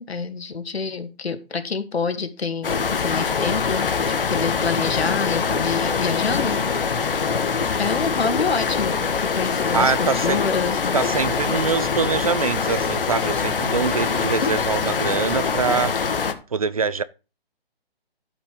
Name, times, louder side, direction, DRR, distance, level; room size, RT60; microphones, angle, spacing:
voice 1, 0.0-3.9 4.3-6.6 7.8-9.0 9.4-11.0, left 5 dB, 85° left, 2.1 m, -27 dB
sound 1, 2.6-16.3, left 5 dB, 60° left, 1.7 m, -23 dB
voice 2, 9.7-10.4 10.9-16.0 16.5-17.0, right 5 dB, 35° right, 0.5 m, -24 dB
12.0 x 5.4 x 5.3 m
hypercardioid pair, 165°, 31 cm